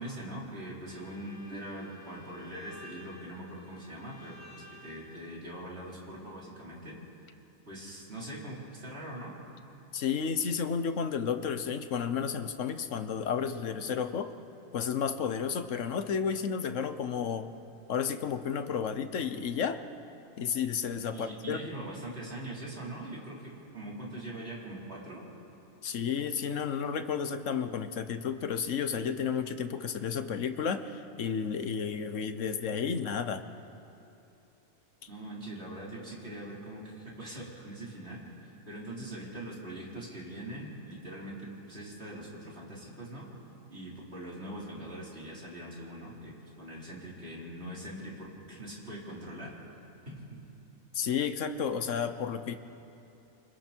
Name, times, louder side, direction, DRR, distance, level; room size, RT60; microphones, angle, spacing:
voice 1, 0.0-7.0 7.7-9.3 21.1-25.2 35.1-43.3 43.7-49.5, right 1 dB, 55° right, -5 dB, 4.8 m, -42 dB
Bowed string instrument, 0.9-5.6, left 1 dB, 15° left, 1.5 m, -54 dB
voice 2, 9.9-14.3 14.7-17.5 17.9-19.8 20.4-21.6 25.8-33.4 50.9-52.6, left 7 dB, 75° left, 10 dB, 1.3 m, -32 dB
29.0 x 25.0 x 4.5 m, 2.8 s
omnidirectional pair, 1.3 m